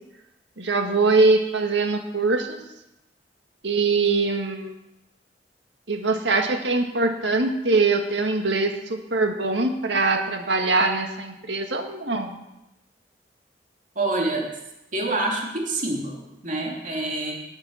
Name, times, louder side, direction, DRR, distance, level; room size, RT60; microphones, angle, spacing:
voice 1, 0.6-2.6 3.6-4.7 5.9-12.4, right 3 dB, 75° right, 4 dB, 1.9 m, -22 dB
voice 2, 13.9-14.5 14.9-17.4, right 2 dB, 45° right, -1 dB, 2.8 m, -27 dB
19.5 x 6.7 x 6.5 m, 0.91 s
head